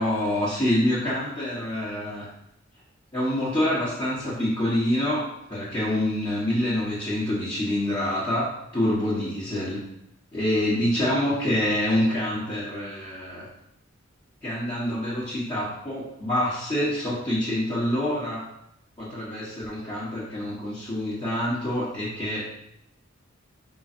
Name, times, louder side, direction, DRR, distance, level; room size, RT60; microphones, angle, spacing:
voice 1, 0.0-2.3 3.1-5.2 5.5-9.8 10.3-13.5 14.4-18.4 19.0-22.5, left 1 dB, 20° left, -11 dB, 1.4 m, -26 dB
5.5 x 3.9 x 4.4 m, 0.82 s
head